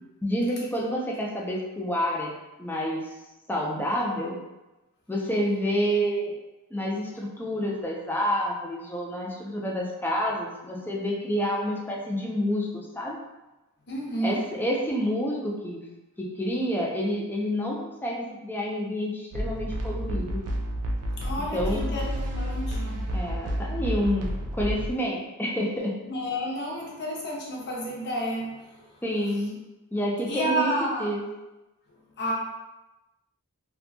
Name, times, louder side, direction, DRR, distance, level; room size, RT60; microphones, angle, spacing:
voice 1, 0.2-2.3 2.6-3.0 3.5-4.4 5.1-6.3 6.7-13.2 14.2-15.8 16.2-20.4 21.5-21.9 23.1-26.0 29.0-29.6 29.9-31.2, equal, 10° left, -2 dB, 0.4 m, -28 dB
voice 2, 13.9-14.4 21.2-23.0 26.0-29.0 30.3-31.1 32.2-32.3, equal, 50° left, -2 dB, 0.6 m, -31 dB
sound 1, 19.3-24.9, equal, 75° right, 0.4 m, -30 dB
2.6 x 2.2 x 2.6 m, 1.0 s
head